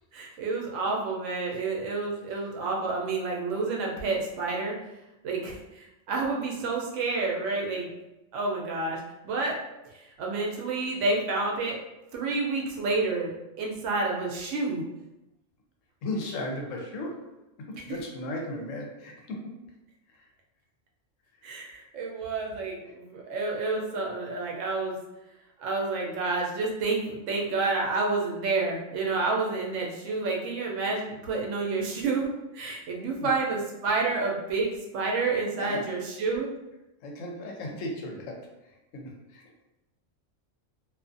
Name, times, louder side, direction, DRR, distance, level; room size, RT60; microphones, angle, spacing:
voice 1, 0.1-4.8 5.2-7.9 8.3-9.6 9.9-11.8 12.1-13.3 13.6-14.8 17.9-18.0 21.4-25.0 25.6-36.5, right 3 dB, 70° right, -1 dB, 0.9 m, -29 dB
voice 2, 16.0-17.2 17.7-19.5 33.2-33.3 35.5-35.9 37.0-38.5 38.9-39.5, left 1 dB, 75° left, 1 dB, 0.9 m, -36 dB
2.5 x 2.4 x 2.5 m, 0.95 s
omnidirectional pair, 1.3 m